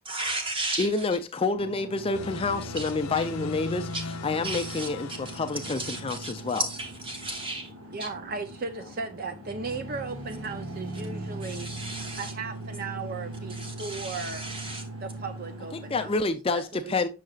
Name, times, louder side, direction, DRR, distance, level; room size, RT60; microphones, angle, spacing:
voice 1, 0.0-1.1 2.8-3.3 3.9-4.0 4.4-4.9 5.2-7.7 8.0-8.1 11.4-12.3 13.5-14.9, right 2 dB, 25° right, 1.2 m, -35 dB
voice 2, 0.8-3.9 4.2-6.6 15.7-17.1, left 3 dB, 25° left, 0.4 m, -28 dB
sound 1, 1.5-16.1, right 1 dB, 80° right, 1.8 m, -40 dB
sound 2, 2.1-6.6, left 3 dB, 85° left, 0.7 m, -39 dB
voice 3, 7.9-11.7 12.2-14.4 15.0-16.1 16.5-17.1, right 4 dB, 40° right, 0.5 m, -36 dB
6.5 x 6.3 x 2.3 m
head